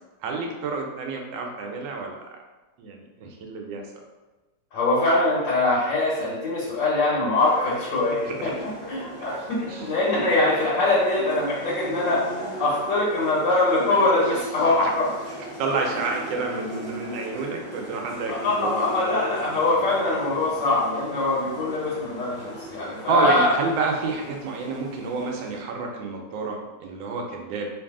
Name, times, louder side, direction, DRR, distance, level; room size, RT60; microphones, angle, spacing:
voice 1, 0.2-2.2 2.8-3.8 8.2-8.5 9.7-9.9 14.8-14.9 15.4-18.9 23.1-27.7, right 4 dB, 85° right, 1 dB, 1.4 m, -29 dB
voice 2, 4.7-8.5 8.9-12.2 12.6-15.1 18.3-23.5, left 2 dB, 75° left, -7 dB, 1.5 m, -23 dB
sound 1, 7.4-25.6, right 1 dB, 30° left, 0.8 m, -39 dB
3.3 x 2.6 x 3.5 m, 1.2 s
omnidirectional pair, 2.0 m